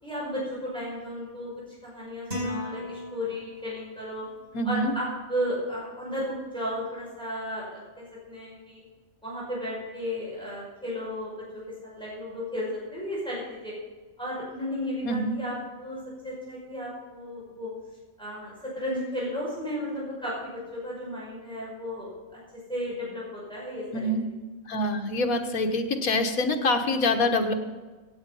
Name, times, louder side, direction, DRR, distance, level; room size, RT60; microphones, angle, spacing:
voice 1, 0.0-1.5 1.8-4.3 4.6-8.8 9.2-13.7 14.2-17.7 18.2-22.1 22.5-24.1, equal, 5° left, -6 dB, 5.2 m, -34 dB
sound 1, 2.3-3.8, left 1 dB, 30° right, 5.4 m, -35 dB
voice 2, 4.5-4.9 15.0-15.4 23.9-24.2 24.7-27.5, left 2 dB, 90° left, 4 dB, 1.8 m, -25 dB
17.0 x 8.6 x 5.6 m, 1.3 s
omnidirectional pair, 1.5 m